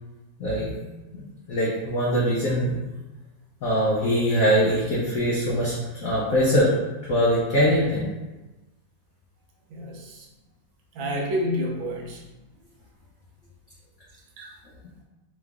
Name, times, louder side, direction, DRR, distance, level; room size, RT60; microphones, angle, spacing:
voice 1, 0.4-0.7 1.5-2.7 3.6-6.7 7.1-8.0, equal, 60° left, -6 dB, 1.0 m, -22 dB
voice 2, 9.7-10.3 10.9-12.2 14.4-14.5, equal, 70° right, -1 dB, 1.4 m, -29 dB
4.9 x 2.5 x 3.4 m, 1.1 s
omnidirectional pair, 2.2 m